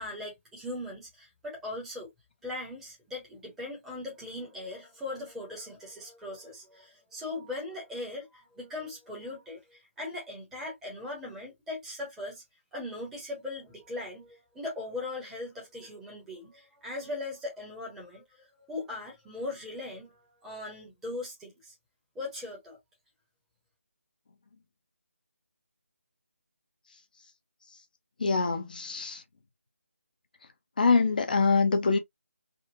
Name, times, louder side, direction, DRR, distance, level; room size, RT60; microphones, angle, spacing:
voice 1, 0.0-2.1 2.4-12.4 12.7-21.7 22.1-22.8, left 2 dB, 5° right, 0.9 m, -39 dB
voice 2, 28.2-29.2 30.8-32.0, left 4 dB, 35° left, 0.5 m, -24 dB
3.6 x 2.1 x 2.6 m
figure-of-eight pair, 160°, 8 cm